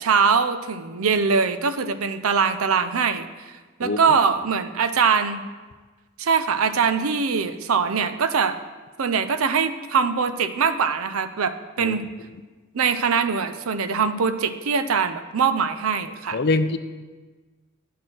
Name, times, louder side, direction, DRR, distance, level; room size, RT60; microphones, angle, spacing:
voice 1, 0.0-3.3 3.8-5.4 6.2-8.6 9.0-12.0 12.7-16.4, right 5 dB, 80° right, 11 dB, 0.5 m, -22 dB
voice 2, 11.8-12.3 16.3-16.8, left 3 dB, 50° left, 11 dB, 0.5 m, -24 dB
9.3 x 4.4 x 7.5 m, 1.3 s
head